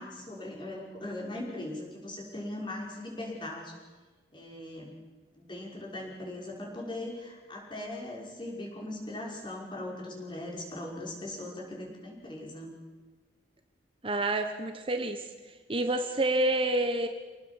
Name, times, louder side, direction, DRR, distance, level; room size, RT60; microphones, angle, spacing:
voice 1, 0.0-3.8 4.3-5.0 5.3-12.7, left 1 dB, 25° left, -2 dB, 5.6 m, -39 dB
voice 2, 14.0-17.1, right 2 dB, 30° right, 7 dB, 1.2 m, -29 dB
26.5 x 19.0 x 7.3 m, 1.4 s
head